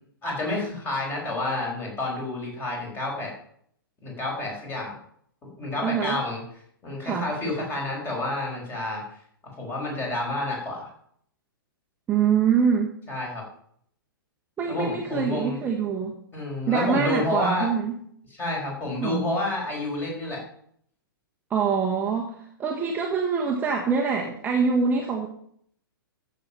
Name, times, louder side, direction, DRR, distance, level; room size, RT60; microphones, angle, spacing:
voice 1, 0.2-3.3 4.0-4.9 5.5-6.4 6.8-9.0 9.6-10.9 13.1-13.4 14.7-15.6 16.3-17.7 18.3-20.4, left 2 dB, 20° left, -1 dB, 5.3 m, -29 dB
voice 2, 5.8-6.2 7.0-7.3 12.1-12.9 14.6-16.2 16.7-18.0 19.0-19.3 21.5-25.3, right 6 dB, 15° right, 0 dB, 1.4 m, -24 dB
14.0 x 7.4 x 5.7 m, 0.65 s
figure-of-eight pair, 110°, 12 cm